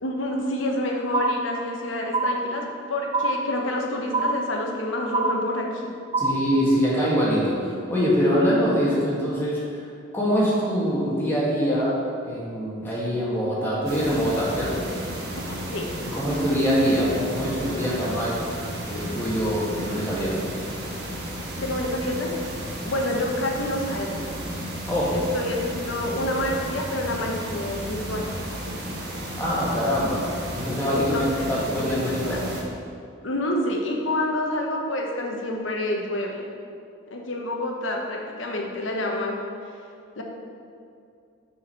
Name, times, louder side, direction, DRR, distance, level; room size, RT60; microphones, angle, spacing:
voice 1, 0.0-5.9 15.4-16.0 21.6-24.2 25.1-28.3 30.9-31.2 31.5-32.4 33.2-36.4 37.1-39.4 40.2-40.3, left 1 dB, 90° left, 1 dB, 1.1 m, -28 dB
sound 1, 1.1-1.8 2.1-2.8 3.1-3.8 4.1-4.8 5.1-5.8 6.1-6.8, right 2 dB, 25° right, 0.3 m, -26 dB
voice 2, 6.2-9.8 10.1-12.0 12.2-14.8 16.1-18.4 18.8-20.5 24.9-25.2 29.3-32.5, equal, 10° left, -7 dB, 1.8 m, -24 dB
sound 2, 13.9-32.6, right 1 dB, 60° right, 1.3 m, -33 dB
6.7 x 5.0 x 5.7 m, 2.4 s
head